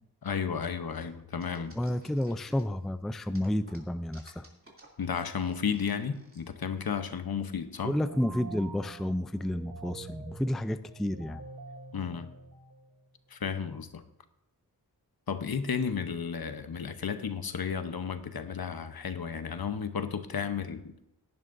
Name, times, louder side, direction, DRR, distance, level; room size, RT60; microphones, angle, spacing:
voice 1, 0.2-1.8 5.0-8.0 11.9-12.3 13.3-14.0 15.3-21.1, left 6 dB, 65° left, 9 dB, 0.9 m, -33 dB
sound 1, 1.0-2.8 3.2-6.4, right 2 dB, 35° right, 2.8 m, -55 dB
voice 2, 1.6-4.5 7.8-11.4, left 1 dB, ahead, 11 dB, 0.4 m, -31 dB
sound 2, 7.8-13.2, right 4 dB, 50° right, 1.3 m, -47 dB
17.5 x 11.0 x 2.6 m, 0.83 s
wide cardioid pair, 95°, 39 cm